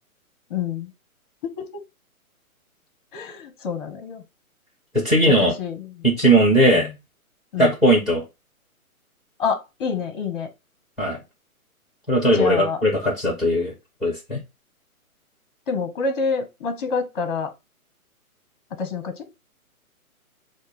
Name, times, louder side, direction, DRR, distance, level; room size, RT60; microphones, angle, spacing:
voice 1, 0.5-0.9 1.4-1.8 3.1-4.2 5.3-6.0 6.7-6.9 7.5-7.7 9.4-10.5 12.3-12.8 15.7-17.5 18.7-19.3, left 5 dB, 35° left, 0.9 m, -27 dB
voice 2, 4.9-5.5 6.0-6.9 7.6-8.2 11.0-11.2 12.1-13.7 14.0-14.4, right 1 dB, ahead, 1.1 m, -18 dB
6.1 x 2.2 x 3.4 m
hypercardioid pair, 155°, 44 cm